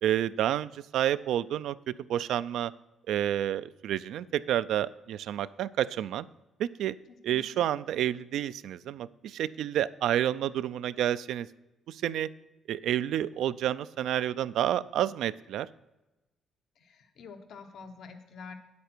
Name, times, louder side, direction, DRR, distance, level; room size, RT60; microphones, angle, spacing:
voice 1, 0.0-1.8 2.1-2.7 3.1-6.3 6.6-7.0 7.2-11.5 11.9-12.3 12.7-15.7, right 11 dB, 80° right, 15 dB, 0.3 m, -29 dB
voice 2, 7.1-7.6 16.8-18.5, left 5 dB, 70° left, 6 dB, 1.0 m, -47 dB
9.1 x 8.3 x 4.5 m, 1.0 s
cardioid pair, 90°, 0 cm